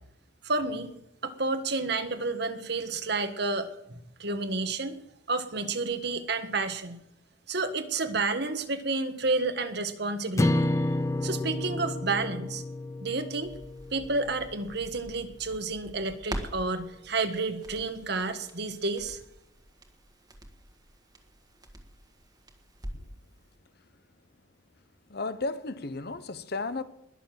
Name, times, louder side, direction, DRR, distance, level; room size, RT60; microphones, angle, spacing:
voice 1, 0.4-0.9 1.2-3.7 4.2-5.0 5.3-7.0 7.5-10.7 11.2-12.6 13.0-13.5 13.9-19.2, right 3 dB, 55° right, 1.5 m, -30 dB
sound 1, 10.4-14.7, left 1 dB, 15° left, 0.4 m, -30 dB
Crackle, 13.4-23.2 23.5-23.6, right 1 dB, 20° right, 1.7 m, -45 dB
voice 2, 25.1-26.8, left 3 dB, 50° left, 0.9 m, -34 dB
20.5 x 7.1 x 7.6 m
head